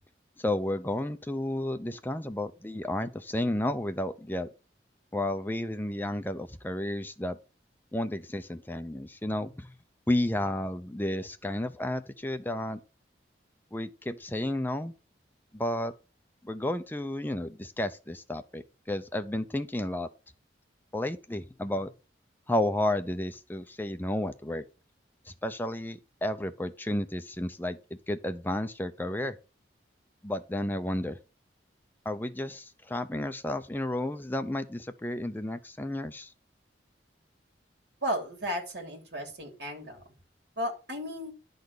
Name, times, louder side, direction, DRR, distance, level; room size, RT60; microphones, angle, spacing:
voice 1, 0.4-4.5 5.1-7.4 7.9-9.7 10.1-12.8 13.7-14.9 15.5-15.9 16.4-20.1 20.9-21.9 22.5-24.6 25.4-27.8 28.1-29.4 30.2-31.2 32.1-36.3, left 1 dB, 10° left, 0.6 m, -32 dB
voice 2, 38.0-40.1 40.6-41.3, equal, 65° right, 3.0 m, -34 dB
10.5 x 4.0 x 6.7 m
head